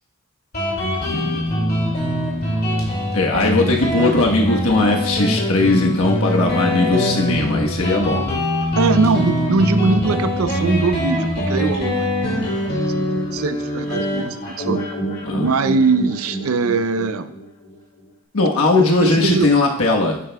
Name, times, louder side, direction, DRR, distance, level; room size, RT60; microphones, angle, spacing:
Guitar, 0.5-17.7, equal, 45° left, 2.3 m, -23 dB
voice 1, 1.0-1.4 3.1-8.4 15.2-15.5 18.3-20.2, left 2 dB, 85° left, 0 dB, 1.2 m, -18 dB
voice 2, 8.7-12.1 12.9-14.8 15.4-17.3 19.0-19.5, right 4 dB, 85° right, 10 dB, 0.5 m, -21 dB
10.0 x 8.0 x 2.3 m, 0.76 s
head